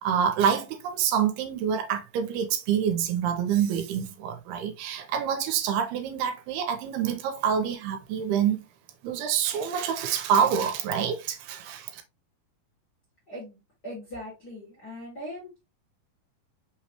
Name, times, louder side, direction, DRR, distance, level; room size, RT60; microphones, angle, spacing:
voice 1, 0.0-8.6 9.0-12.0, right 8 dB, 85° right, 2.7 m, -27 dB
voice 2, 13.3-15.6, equal, 40° left, 1.6 m, -40 dB
5.7 x 3.0 x 2.8 m
omnidirectional pair, 4.6 m